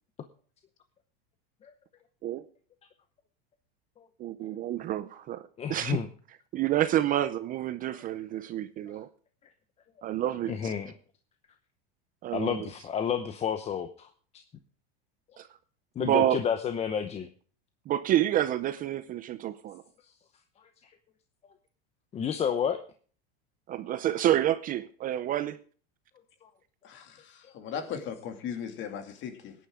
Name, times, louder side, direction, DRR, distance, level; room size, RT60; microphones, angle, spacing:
voice 1, 4.2-6.0 6.5-9.1 10.0-10.7 12.2-12.7 15.4-15.5 16.0-16.4 17.9-19.8 23.7-25.6, right 12 dB, 30° right, 13 dB, 0.5 m, -28 dB
voice 2, 5.6-6.1 10.5-10.9 12.3-14.1 16.0-17.3 22.1-22.8 26.4-26.5, left 8 dB, 20° left, 9 dB, 0.8 m, -30 dB
voice 3, 26.8-27.2 27.5-29.5, left 7 dB, 40° left, 7 dB, 2.4 m, -37 dB
18.0 x 10.5 x 3.7 m, 0.43 s
supercardioid pair, 145°, 30 cm